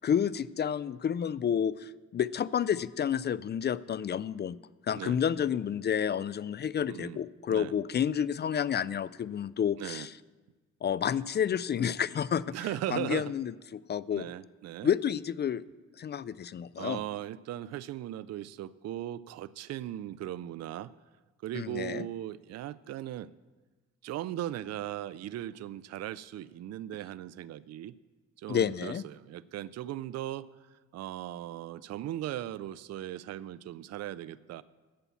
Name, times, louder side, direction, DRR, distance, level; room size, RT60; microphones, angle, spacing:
voice 1, 0.0-4.6 4.9-10.1 10.8-12.4 12.9-14.3 14.8-15.6 16.0-17.0 21.5-22.1 28.5-29.0, left 8 dB, 35° left, 19 dB, 0.4 m, -30 dB
voice 2, 6.9-7.2 7.5-7.7 9.8-10.1 12.5-13.3 14.1-14.9 16.8-20.9 21.4-23.3 24.0-27.9 28.4-34.6, right 13 dB, 60° right, 17 dB, 0.4 m, -38 dB
11.0 x 8.2 x 7.1 m, 1.3 s
cardioid pair, 90°, 30 cm